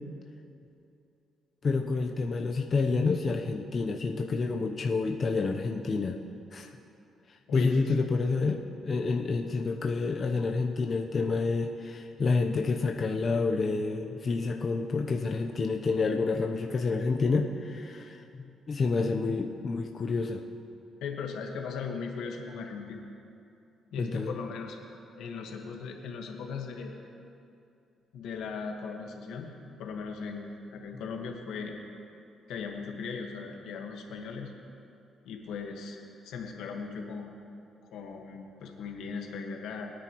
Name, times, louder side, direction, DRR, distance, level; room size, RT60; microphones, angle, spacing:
voice 1, 1.6-6.2 6.5-6.7 7.5-18.2 18.7-20.4 24.0-24.3, left 4 dB, 45° left, 2 dB, 0.8 m, -28 dB
voice 2, 7.5-7.9 21.0-23.0 23.9-24.8 25.2-26.9 28.1-29.5 29.8-31.8 32.5-34.5 35.2-37.3 37.9-39.9, left 5 dB, 85° left, 2 dB, 1.5 m, -38 dB
22.5 x 9.6 x 3.1 m, 2.7 s
cardioid pair, 90°, 0 cm